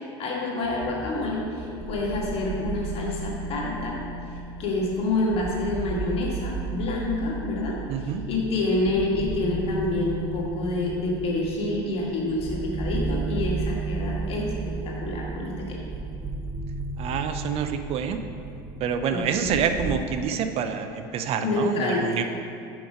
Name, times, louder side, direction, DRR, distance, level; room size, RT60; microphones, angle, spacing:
voice 1, 0.0-4.0 4.6-15.9 19.1-19.6 21.4-22.2, left 2 dB, 45° left, -3 dB, 1.7 m, -28 dB
sound 1, 0.6-20.0, right 3 dB, 15° right, 0.9 m, -34 dB
voice 2, 7.9-8.2 17.0-18.2 18.8-22.2, right 7 dB, 50° right, 8 dB, 0.5 m, -27 dB
5.9 x 5.2 x 5.1 m, 2.5 s
supercardioid pair, 95°, 13 cm